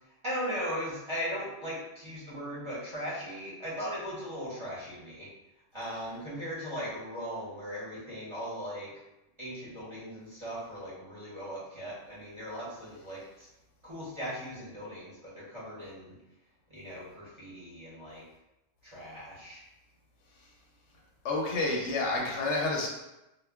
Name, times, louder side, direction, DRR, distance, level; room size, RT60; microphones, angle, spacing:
voice 1, 0.2-5.3 5.7-8.9 9.4-13.5 13.8-16.1 16.7-18.2 18.8-19.6, equal, 30° right, -8 dB, 0.8 m, -38 dB
voice 2, 21.2-22.9, left 2 dB, 85° left, -1 dB, 0.9 m, -29 dB
2.2 x 2.1 x 3.4 m, 0.94 s
omnidirectional pair, 1.2 m